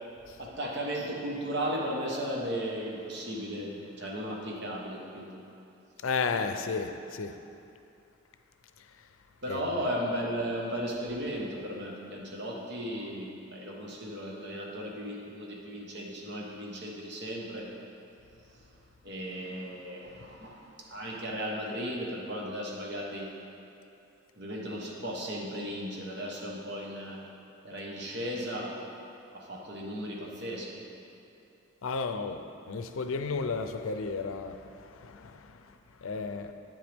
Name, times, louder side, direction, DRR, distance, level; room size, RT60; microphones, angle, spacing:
voice 1, 0.4-5.4 9.4-17.7 19.0-23.4 24.4-27.3 27.6-28.8 29.3-30.8, equal, 55° right, -2 dB, 1.2 m, -36 dB
voice 2, 6.0-7.3 9.5-9.6 31.8-32.4 32.7-34.6 35.0-35.4 36.0-36.5, left 4 dB, 90° left, 8 dB, 0.5 m, -32 dB
9.0 x 7.9 x 3.5 m, 2.7 s
head